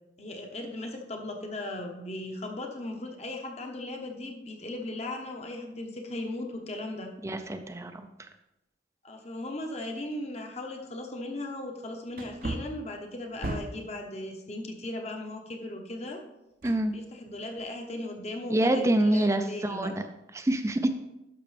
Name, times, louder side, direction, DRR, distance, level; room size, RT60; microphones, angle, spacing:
voice 1, 0.2-7.1 9.0-16.2 16.9-19.9, left 1 dB, 35° left, 3 dB, 1.1 m, -37 dB
voice 2, 7.2-8.1 16.6-17.0 18.5-20.0 20.3-20.9, right 1 dB, 15° right, 7 dB, 0.4 m, -26 dB
Wood, 10.8-10.9 12.1-14.0 16.6-17.4 17.8-17.9, right 2 dB, 50° right, 0.7 m, -37 dB
11.5 x 6.1 x 3.4 m, 0.93 s
head